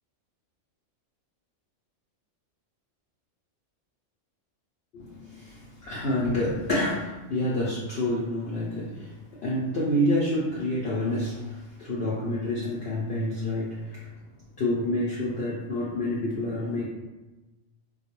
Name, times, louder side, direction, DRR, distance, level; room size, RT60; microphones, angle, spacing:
voice 1, 4.9-9.1 9.4-14.0 14.6-16.9, left 1 dB, 60° left, -7 dB, 0.7 m, -28 dB
2.3 x 2.2 x 2.9 m, 1.1 s
omnidirectional pair, 1.3 m